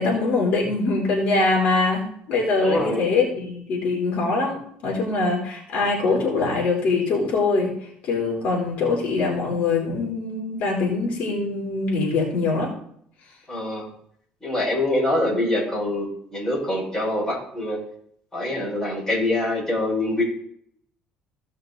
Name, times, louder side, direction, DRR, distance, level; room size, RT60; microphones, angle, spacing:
voice 1, 0.0-7.7 8.0-12.7 15.2-15.3, left 3 dB, 55° left, -3 dB, 3.8 m, -23 dB
voice 2, 2.6-3.1 13.5-13.8 14.4-17.8 18.3-20.2, left 1 dB, 15° left, -4 dB, 5.3 m, -24 dB
16.5 x 5.7 x 4.0 m, 0.66 s
cardioid pair, 130°, 3 cm